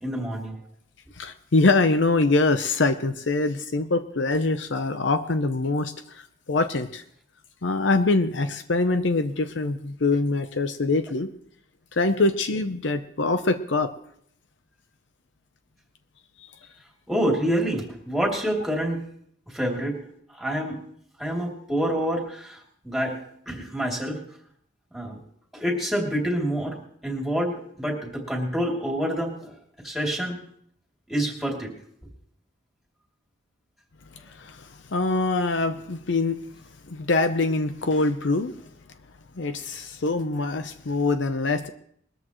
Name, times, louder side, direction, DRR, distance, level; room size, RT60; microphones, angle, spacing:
voice 1, 0.0-0.6 17.1-19.1 19.5-20.0 20.3-20.8 21.2-24.2 24.9-25.2 25.5-29.5 29.8-30.4 31.1-31.7, equal, ahead, -1 dB, 2.9 m, -27 dB
voice 2, 1.2-6.2 6.5-7.0 7.6-11.3 12.0-13.9 34.4-36.4 36.9-38.5 39.4-41.7, left 3 dB, 65° left, 9 dB, 0.7 m, -24 dB
21.0 x 14.0 x 3.1 m, 0.67 s
head